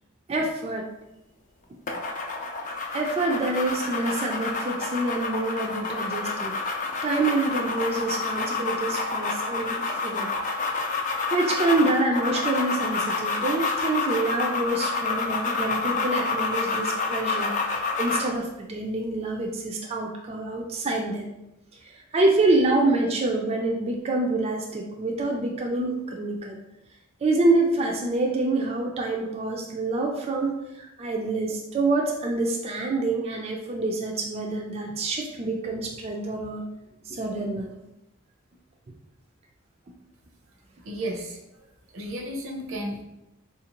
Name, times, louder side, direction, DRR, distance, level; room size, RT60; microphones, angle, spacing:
voice 1, 0.3-0.9 2.9-6.5 7.0-10.3 10.9-11.0 11.3-17.5 18.0-21.3 21.8-26.6 27.2-36.7 37.1-37.7, right 2 dB, 30° right, 0 dB, 0.3 m, -26 dB
sound 1, 1.9-18.4, left 4 dB, 40° left, 0.4 m, -28 dB
voice 2, 40.8-41.7 41.9-43.0, right 1 dB, 80° right, 1 dB, 0.6 m, -33 dB
3.4 x 2.5 x 2.9 m, 0.90 s
head